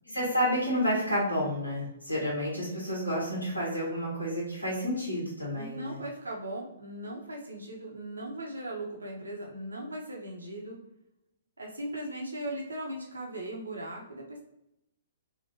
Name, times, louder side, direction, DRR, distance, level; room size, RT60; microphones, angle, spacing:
voice 1, 0.1-6.0, equal, 85° left, -6 dB, 1.4 m, -30 dB
voice 2, 5.5-10.8 11.6-14.4, right 1 dB, 75° right, -1 dB, 0.8 m, -38 dB
3.9 x 2.5 x 2.6 m, 0.83 s
figure-of-eight pair, 120°, 0 cm